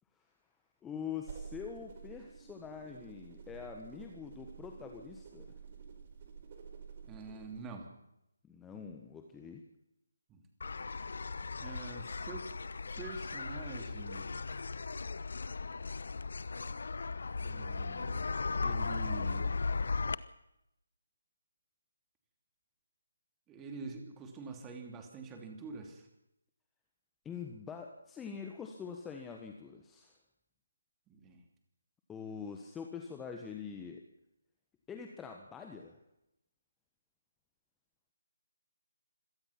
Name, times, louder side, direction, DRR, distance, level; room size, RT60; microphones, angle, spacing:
voice 1, 0.8-5.6 8.4-9.6 27.2-30.1 32.1-34.0 34.9-36.0, left 6 dB, 10° left, 3 dB, 1.4 m, -44 dB
sound 1, 1.2-7.7, right 6 dB, 35° right, 4.8 m, -50 dB
voice 2, 7.0-7.9 10.3-10.4 10.8-11.1 11.6-12.5 13.0-14.3 17.4-19.6 23.5-26.1 31.1-31.4, right 4 dB, 15° right, 3 dB, 2.9 m, -46 dB
sound 2, 10.6-20.1, left 4 dB, 60° left, 0.9 m, -37 dB
26.0 x 17.5 x 6.0 m, 0.85 s
figure-of-eight pair, 150°, 0 cm